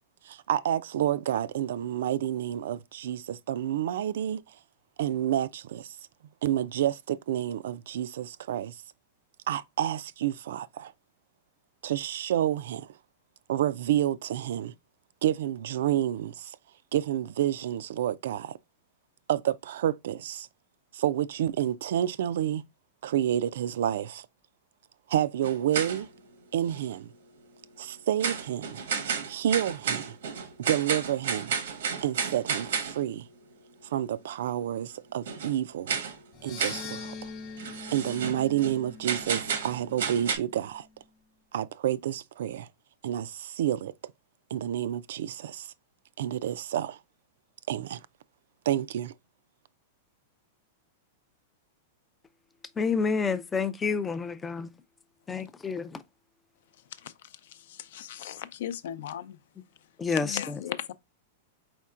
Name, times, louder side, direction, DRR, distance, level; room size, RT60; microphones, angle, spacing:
voice 1, 0.2-4.4 5.0-6.0 6.4-8.8 9.5-10.9 11.8-12.9 13.5-14.7 15.2-16.6 16.9-18.6 19.3-20.5 20.9-22.6 23.0-24.3 25.1-26.1 26.5-27.1 27.8-28.8 29.3-30.2 30.7-31.6 32.0-33.3 33.9-36.0 36.4-37.3 37.9-40.9 41.5-42.7 43.0-43.9 44.5-45.7 46.2-47.0 47.7-48.0 48.7-49.1, right 11 dB, 70° right, 0.3 m, -29 dB
sound 1, 25.4-26.2 26.7-26.8 28.2-33.0 35.3-35.6 35.9-36.2 36.6-36.9 37.6-38.8 39.0-40.4, right 6 dB, 90° right, 1.0 m, -32 dB
sound 2, 36.3-40.7, left 5 dB, 35° left, 1.0 m, -43 dB
voice 2, 52.8-54.7 55.3-56.0 60.0-60.6, left 5 dB, 10° left, 0.3 m, -29 dB
voice 3, 57.7-59.4 60.2-60.9, left 10 dB, 65° left, 0.5 m, -36 dB
4.4 x 4.3 x 2.4 m
supercardioid pair, 165°, 0 cm